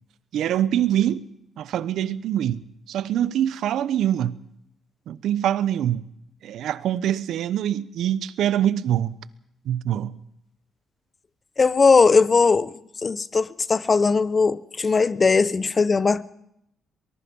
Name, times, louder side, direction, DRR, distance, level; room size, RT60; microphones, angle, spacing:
voice 1, 0.3-1.2 1.6-2.6 2.9-4.4 5.1-6.1 6.4-9.2 9.6-10.2, right 11 dB, 75° right, 1.0 m, -24 dB
voice 2, 11.6-12.7 13.0-16.3, left 4 dB, 35° left, 1.0 m, -19 dB
23.5 x 21.0 x 5.5 m
cardioid pair, 90°, 0 cm